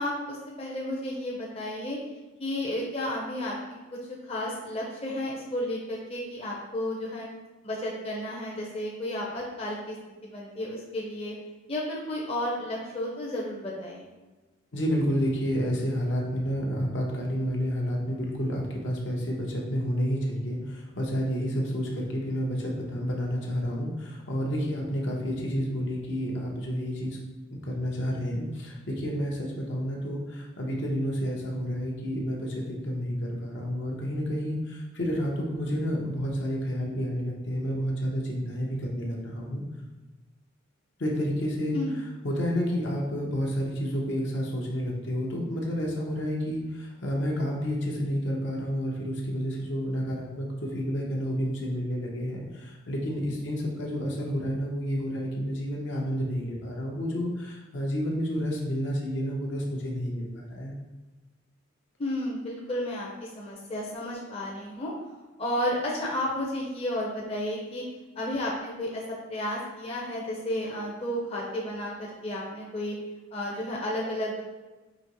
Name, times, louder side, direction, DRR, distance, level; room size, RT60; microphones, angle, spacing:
voice 1, 0.0-2.0 2.4-3.6 3.9-7.3 7.6-10.0 10.2-11.4 11.7-14.1 41.7-41.9 62.0-64.9 65.4-67.9 68.2-73.0 73.3-74.4, left 1 dB, 30° left, -4 dB, 0.6 m, -32 dB
voice 2, 14.7-27.2 27.6-39.6 41.0-41.8 42.2-60.7, equal, 65° left, -1 dB, 0.8 m, -30 dB
5.0 x 2.9 x 2.9 m, 1.2 s
head